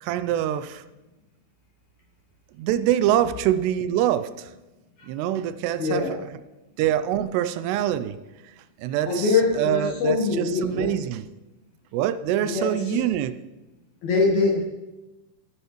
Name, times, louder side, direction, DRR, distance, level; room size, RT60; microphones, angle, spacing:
voice 1, 0.0-0.8 2.6-4.5 5.1-6.2 6.8-8.2 8.8-11.2 11.9-13.3, right 11 dB, 85° right, 2.6 m, -25 dB
voice 2, 5.8-6.2 9.1-10.9 12.4-13.0 14.0-14.6, left 4 dB, 60° left, 2.1 m, -23 dB
15.0 x 11.0 x 3.1 m
omnidirectional pair, 4.8 m